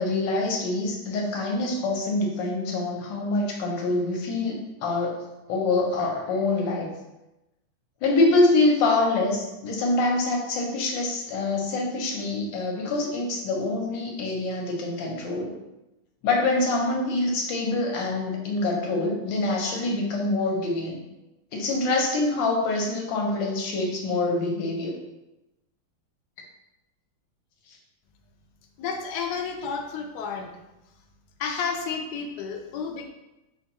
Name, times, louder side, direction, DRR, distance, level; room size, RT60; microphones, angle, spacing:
voice 1, 0.0-5.2 5.5-6.9 8.0-15.5 16.2-21.0 21.5-24.9, left 2 dB, 70° left, 0 dB, 1.3 m, -25 dB
voice 2, 28.8-30.5 31.4-33.1, left 5 dB, 90° left, 2 dB, 0.8 m, -31 dB
5.2 x 2.2 x 2.9 m, 0.97 s
omnidirectional pair, 2.3 m